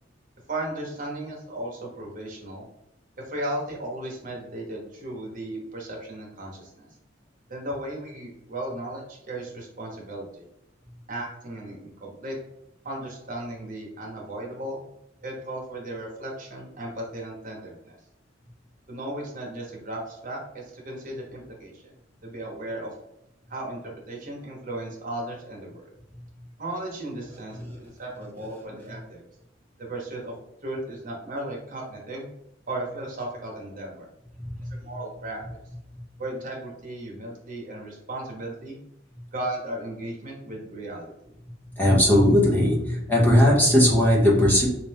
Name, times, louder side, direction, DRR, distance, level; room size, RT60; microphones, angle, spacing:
voice 1, 0.5-2.7 3.2-6.9 7.5-10.5 11.1-12.4 12.8-14.8 15.2-18.0 18.9-21.9 22.2-22.9 23.5-23.8 24.1-25.8 26.6-29.2 29.8-30.3 30.6-32.3 32.7-34.1 34.7-35.4 36.2-38.8 39.3-41.1, right 1 dB, 45° right, -1 dB, 1.1 m, -35 dB
voice 2, 34.3-34.7 41.8-44.7, left 1 dB, 10° left, -3 dB, 1.0 m, -19 dB
3.3 x 2.7 x 3.4 m, 0.81 s
head